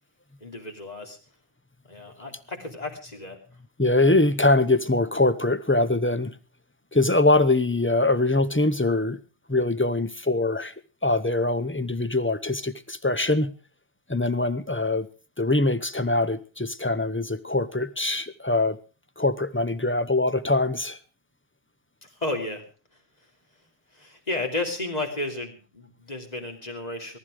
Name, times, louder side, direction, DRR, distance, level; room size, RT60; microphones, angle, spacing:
voice 1, 0.4-1.2 1.9-3.4 22.0-22.6 23.9-27.2, left 2 dB, 40° left, 3 dB, 3.1 m, -33 dB
voice 2, 3.8-6.3 6.9-9.2 9.5-10.7 11.0-13.5 14.1-15.1 15.4-18.8 19.2-21.0, left 2 dB, 15° left, 13 dB, 0.7 m, -23 dB
18.5 x 12.5 x 4.9 m, 0.36 s
omnidirectional pair, 1.1 m